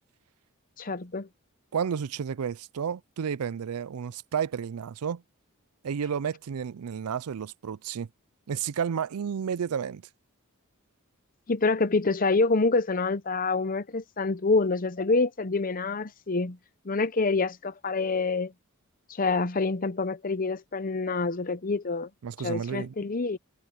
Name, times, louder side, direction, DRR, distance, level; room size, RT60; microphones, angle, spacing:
voice 1, 0.8-1.3 11.5-16.6 16.8-18.5 19.1-22.1 22.4-23.4, left 3 dB, 40° left, 0.8 m, -26 dB
voice 2, 1.7-5.2 5.8-8.1 8.5-10.1 22.2-22.9, right 7 dB, 90° right, 0.4 m, -31 dB
head